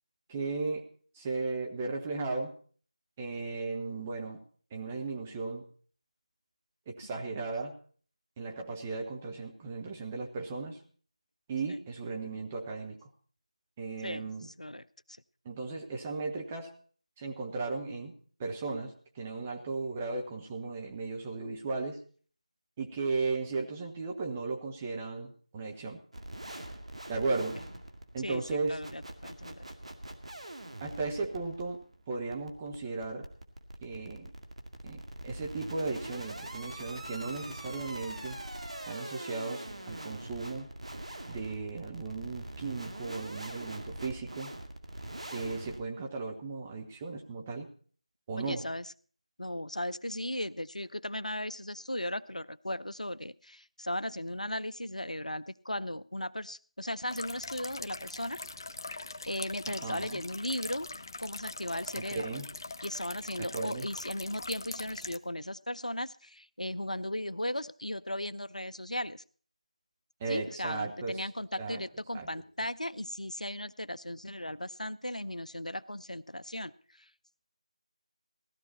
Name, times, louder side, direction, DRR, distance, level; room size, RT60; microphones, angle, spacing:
voice 1, 0.3-0.8 1.1-2.5 3.2-4.4 4.7-5.6 6.9-7.7 8.4-10.8 11.5-13.0 13.8-14.5 15.4-16.7 17.2-18.1 18.4-22.0 22.8-26.0 27.1-27.6 28.1-28.8 30.8-31.8 32.1-33.3 33.8-34.3 34.8-38.4 38.9-40.7 41.3-44.5 45.3-47.7 48.3-48.6 59.7-60.2 61.9-62.5 63.4-63.9 70.2-71.2 71.6-71.8 72.1-72.3, right 3 dB, 15° right, 1 dB, 1.0 m, -36 dB
voice 2, 14.0-14.9 27.5-27.7 28.2-28.4 28.7-29.7 48.4-48.9 49.4-58.5 58.9-59.0 59.3-60.9 61.2-62.2 62.8-69.2 70.3-77.1, left 1 dB, 85° left, 17 dB, 0.6 m, -37 dB
sound 1, 26.1-45.8, right 1 dB, 60° right, 2.1 m, -43 dB
sound 2, 57.1-65.2, left 3 dB, 35° left, 0.6 m, -42 dB
16.5 x 13.0 x 4.2 m, 0.44 s
figure-of-eight pair, 165°, 4 cm